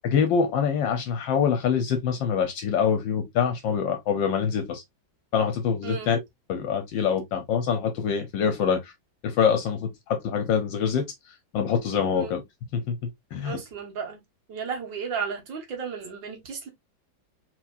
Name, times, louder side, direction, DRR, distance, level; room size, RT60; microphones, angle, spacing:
voice 1, 0.0-4.8 5.3-6.2 6.5-8.9 9.2-12.4 12.7-13.0 13.3-13.6, left 7 dB, 75° left, 1.5 m, -25 dB
voice 2, 13.4-14.2 14.5-16.7, right 6 dB, 75° right, 2.1 m, -34 dB
4.5 x 4.2 x 2.5 m
omnidirectional pair, 2.1 m